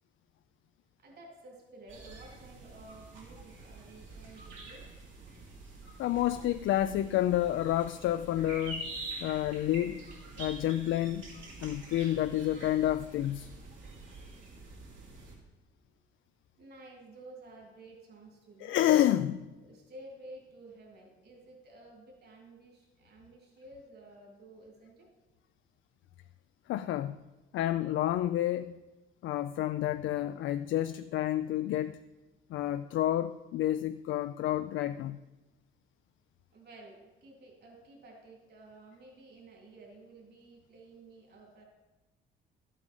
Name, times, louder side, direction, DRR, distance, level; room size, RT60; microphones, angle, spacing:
voice 1, 1.0-4.9 15.8-16.0 16.6-18.8 19.6-25.1 36.5-41.6, right 2 dB, 55° right, 0 dB, 3.4 m, -52 dB
sound 1, 1.9-15.3, right 2 dB, 75° right, 4.1 m, -46 dB
voice 2, 6.0-8.9 9.2-10.0 10.4-11.3 11.6-13.5 18.6-19.5 26.7-27.2 27.5-28.8 29.2-32.0 32.5-35.2, left 13 dB, 80° left, 11 dB, 0.4 m, -29 dB
12.0 x 8.4 x 5.4 m, 1.1 s
cardioid pair, 90°, 20 cm